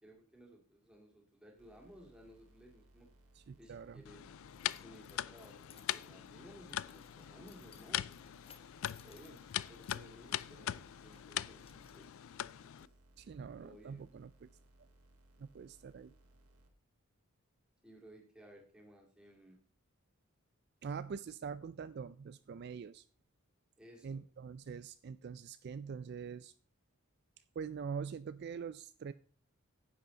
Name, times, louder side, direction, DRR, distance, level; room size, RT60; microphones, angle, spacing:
voice 1, 0.0-3.1 3.6-4.2 4.8-8.1 8.9-9.4 9.7-12.1 12.6-12.9 13.6-14.1 17.8-19.6 23.8-24.2, equal, 5° right, 0 dB, 2.5 m, -58 dB
sound 1, 1.6-16.7, right 1 dB, 85° right, 2.0 m, -65 dB
voice 2, 3.4-4.0 13.2-14.5 15.4-16.1 20.8-23.0 24.0-26.5 27.6-29.1, right 6 dB, 50° right, 14 dB, 0.3 m, -44 dB
Keys jangling, 3.9-12.8, left 7 dB, 25° left, 0.8 m, -64 dB
sound 2, 4.1-12.9, left 12 dB, 70° left, 0.3 m, -42 dB
10.0 x 8.2 x 3.9 m, 0.43 s
head